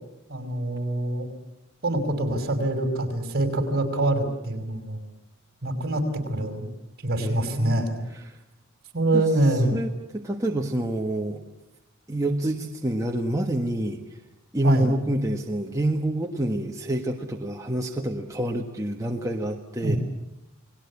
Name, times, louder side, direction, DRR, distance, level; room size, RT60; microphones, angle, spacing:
voice 1, 0.3-1.3 1.8-5.0 5.6-6.6 7.0-8.0 8.9-9.8 14.6-14.9 19.8-20.0, right 1 dB, 50° right, 5 dB, 5.5 m, -25 dB
voice 2, 7.2-8.4 9.1-9.2 9.7-11.4 12.1-14.0 14.5-20.0, right 1 dB, 15° right, 1 dB, 1.6 m, -27 dB
29.5 x 20.0 x 8.5 m, 0.90 s
head